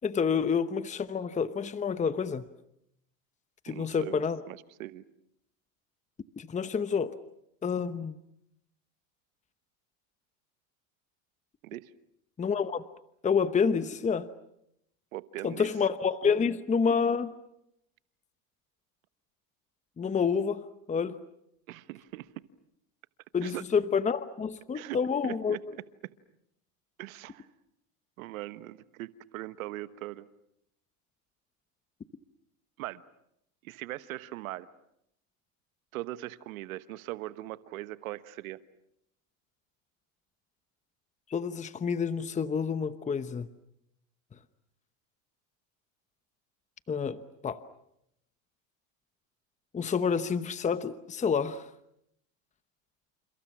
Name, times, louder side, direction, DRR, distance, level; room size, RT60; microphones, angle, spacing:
voice 1, 0.0-2.5 3.6-4.4 6.4-7.1 7.6-8.2 12.4-12.8 13.2-14.3 15.4-17.3 20.0-21.2 23.3-25.6 41.3-43.5 46.9-47.6 49.7-51.7, left 6 dB, 20° left, 1.0 m, -28 dB
voice 2, 3.7-5.0 11.6-11.9 15.1-15.7 21.7-22.3 23.4-23.6 24.7-25.0 25.2-25.6 26.0-26.1 27.0-27.5 28.2-30.3 32.8-33.0 33.6-34.7 35.9-38.6, right 16 dB, 90° right, 1.2 m, -40 dB
30.0 x 29.0 x 6.1 m
supercardioid pair, 110°, 40 cm